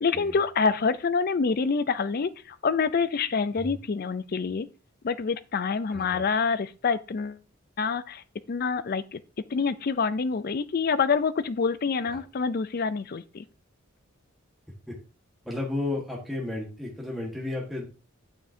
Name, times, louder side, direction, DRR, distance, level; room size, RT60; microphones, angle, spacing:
voice 1, 0.0-4.7 5.0-7.4 7.8-9.2 9.5-13.4, left 5 dB, 45° left, 0.4 m, -27 dB
voice 2, 5.9-6.2 12.0-12.2 14.9-15.0 15.4-17.9, left 2 dB, ahead, 1.4 m, -33 dB
8.9 x 7.0 x 2.7 m
head